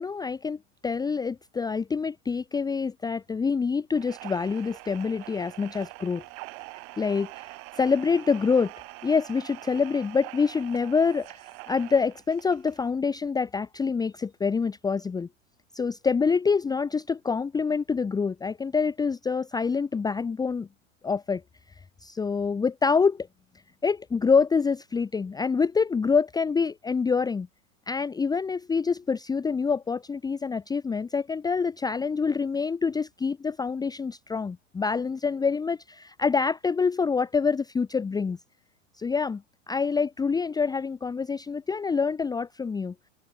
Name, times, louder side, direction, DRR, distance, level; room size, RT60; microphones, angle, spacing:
voice 1, 0.0-6.2 7.0-7.4 7.8-8.7 9.0-11.4 11.7-15.3 15.7-20.7 21.0-21.4 22.0-23.3 23.8-27.5 27.9-38.4 39.0-39.4 39.7-42.9, left 5 dB, 10° left, 0.9 m, -26 dB
sound 1, 3.9-12.9, right 40 dB or more, 45° right, 1.7 m, -44 dB
open air
hypercardioid pair, 115°, 41 cm